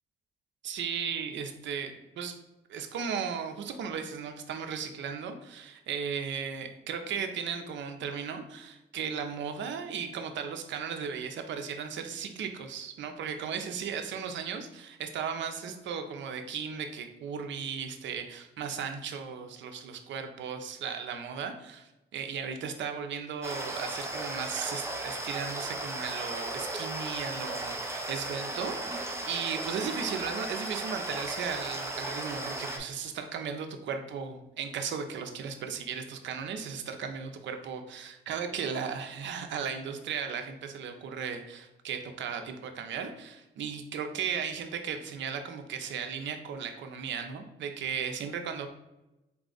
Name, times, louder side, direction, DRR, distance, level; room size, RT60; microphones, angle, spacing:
voice 1, 0.6-2.4 2.7-48.7, right 6 dB, 70° right, 6 dB, 0.6 m, -36 dB
sound 1, 23.4-32.8, right 2 dB, 15° right, 0.6 m, -36 dB
4.1 x 2.4 x 3.8 m, 0.98 s
cardioid pair, 90°, 20 cm